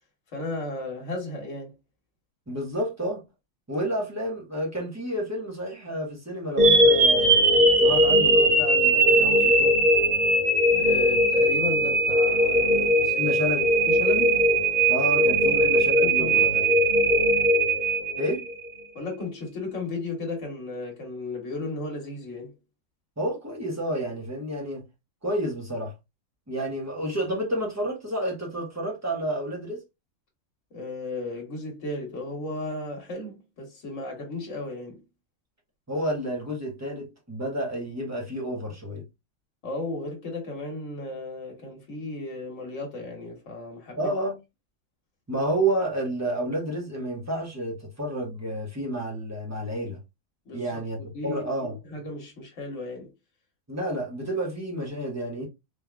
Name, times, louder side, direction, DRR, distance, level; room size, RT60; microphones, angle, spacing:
voice 1, 0.3-1.7 10.7-13.3 13.9-14.4 15.5-15.6 16.0-16.6 18.9-22.6 30.7-35.0 39.6-44.1 50.4-51.4 51.9-53.1, left 2 dB, 65° left, 1.6 m, -35 dB
voice 2, 2.5-3.2 3.7-7.4 7.8-9.8 13.1-13.7 14.9-16.7 18.1-18.5 23.2-24.8 25.2-25.9 26.5-29.8 35.9-39.0 44.0-44.4 45.3-50.0 50.5-51.8 53.7-55.5, right 1 dB, 10° right, 1.2 m, -30 dB
sound 1, 6.6-18.7, right 1 dB, 85° right, 1.4 m, -20 dB
3.6 x 3.3 x 2.3 m
omnidirectional pair, 1.4 m